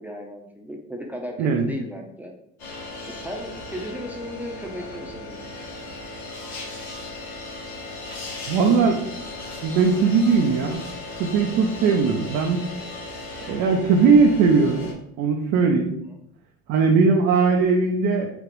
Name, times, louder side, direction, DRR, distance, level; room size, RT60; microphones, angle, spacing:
voice 1, 0.0-2.3 3.0-5.5 11.9-12.1, equal, 5° right, 0 dB, 0.7 m, -35 dB
sound 1, 2.6-14.9, left 2 dB, 85° left, 1.2 m, -37 dB
voice 2, 8.5-9.0 9.6-10.8 11.2-12.6 13.5-14.9 15.2-15.9 16.7-18.3, right 4 dB, 60° right, 2 dB, 0.6 m, -19 dB
5.1 x 2.4 x 3.1 m, 0.74 s
supercardioid pair, 80°, 33 cm